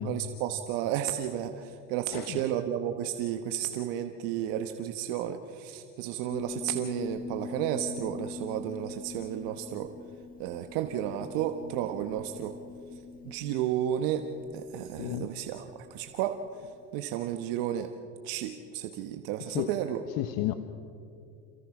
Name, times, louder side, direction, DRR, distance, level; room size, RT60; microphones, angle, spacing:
voice 1, 0.0-9.9 10.4-12.6 13.2-14.3 14.5-16.4 16.9-17.9 18.2-20.0, right 11 dB, 65° right, 7 dB, 1.2 m, -32 dB
voice 2, 2.1-2.4 15.0-15.3 19.4-19.7 20.2-20.5, left 14 dB, 60° left, 9 dB, 1.1 m, -32 dB
Piano, 6.3-17.0, left 4 dB, 20° left, 1.4 m, -44 dB
27.5 x 16.0 x 6.0 m, 2.5 s
supercardioid pair, 110°, 39 cm